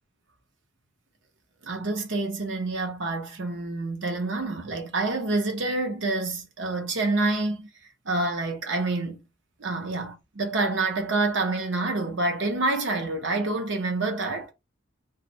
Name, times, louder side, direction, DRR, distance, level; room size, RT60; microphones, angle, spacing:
voice 1, 1.6-7.7 8.1-9.2 9.6-14.5, right 2 dB, 75° right, 0.8 m, -27 dB
2.4 x 2.1 x 3.9 m
head